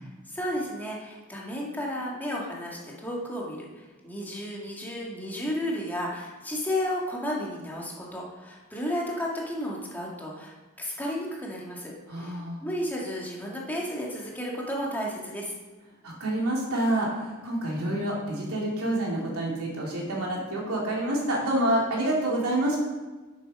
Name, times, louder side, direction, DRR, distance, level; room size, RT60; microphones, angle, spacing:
voice 1, 0.0-15.5, equal, 10° left, -3 dB, 1.8 m, -33 dB
voice 2, 12.1-12.6 16.0-22.8, right 1 dB, 85° right, -3 dB, 2.6 m, -27 dB
8.5 x 6.6 x 5.3 m, 1.3 s
head